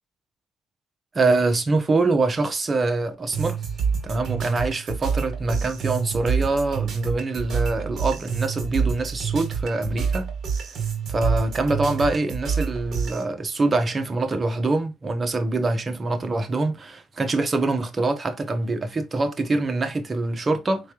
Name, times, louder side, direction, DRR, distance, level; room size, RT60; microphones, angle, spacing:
voice 1, 1.1-3.6 4.0-10.3 11.1-20.9, right 3 dB, 30° right, 1.0 m, -24 dB
sound 1, 3.3-13.2, right 6 dB, 60° right, 1.7 m, -27 dB
4.5 x 3.3 x 2.9 m
cardioid pair, 90°, 0 cm